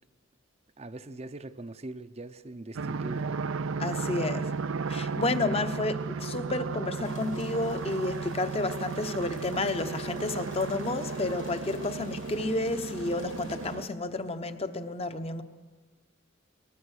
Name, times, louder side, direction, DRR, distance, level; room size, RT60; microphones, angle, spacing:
voice 1, 0.8-3.4, right 2 dB, 30° right, 12 dB, 0.7 m, -41 dB
sound 1, 2.7-13.9, right 4 dB, 70° right, 0.5 m, -34 dB
voice 2, 3.8-4.5 4.9-15.4, left 2 dB, 30° left, 9 dB, 0.9 m, -31 dB
Rain, 7.0-13.8, left 4 dB, 60° left, 2.3 m, -51 dB
22.5 x 19.5 x 6.4 m, 1.4 s
head